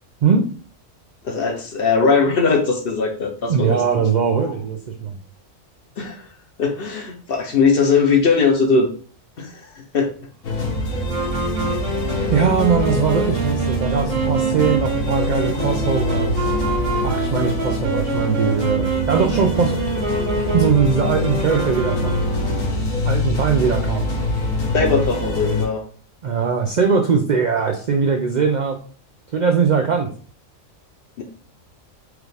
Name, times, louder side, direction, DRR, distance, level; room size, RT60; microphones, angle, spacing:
voice 1, 1.2-3.8 6.0-6.3 6.6-8.9 9.4-10.1 12.2-12.3 24.7-25.8 31.2-31.3, left 4 dB, 55° left, 4 dB, 0.7 m, -19 dB
voice 2, 3.5-5.2 12.3-16.5 17.0-19.8 20.5-22.2 23.1-24.1 26.2-28.8 29.3-30.1, right 6 dB, 85° right, 3 dB, 0.4 m, -20 dB
sound 1, 10.4-25.6, left 1 dB, 75° left, 1.3 m, -24 dB
Wind instrument woodwind instrument, 11.0-22.7, right 2 dB, 65° right, 1.3 m, -26 dB
4.8 x 2.4 x 3.3 m, 0.42 s
omnidirectional pair, 1.4 m